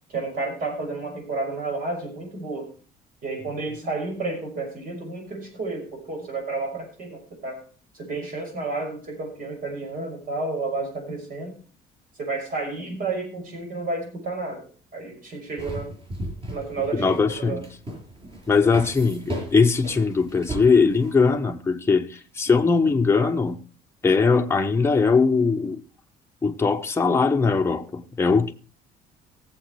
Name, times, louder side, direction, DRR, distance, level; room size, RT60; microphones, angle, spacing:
voice 1, 0.1-2.7 3.2-7.6 7.9-11.5 12.2-14.6 14.9-16.0 16.5-17.6, right 3 dB, 55° right, 6.0 m, -31 dB
sound 1, 15.6-21.3, equal, 35° right, 7.0 m, -36 dB
voice 2, 16.9-17.6 18.5-22.1 22.4-23.6 24.0-25.8 26.4-28.5, left 4 dB, 15° left, 1.0 m, -20 dB
17.5 x 7.6 x 4.7 m
cardioid pair, 110°, 17 cm